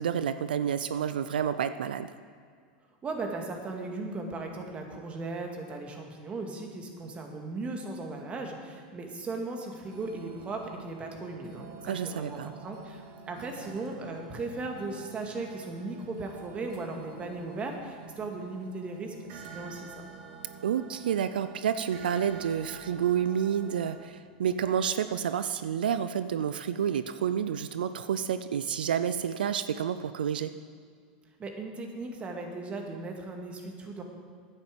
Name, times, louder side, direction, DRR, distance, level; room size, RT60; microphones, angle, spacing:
voice 1, 0.0-2.1 11.8-12.5 20.6-30.5, right 8 dB, 90° right, 12 dB, 0.5 m, -29 dB
voice 2, 3.0-19.9 31.4-34.0, right 3 dB, 25° right, 2 dB, 2.1 m, -37 dB
sound 1, 9.8-24.1, right 5 dB, 60° right, 1.9 m, -48 dB
10.0 x 8.9 x 7.7 m, 2.1 s
hypercardioid pair, 120°, 5 cm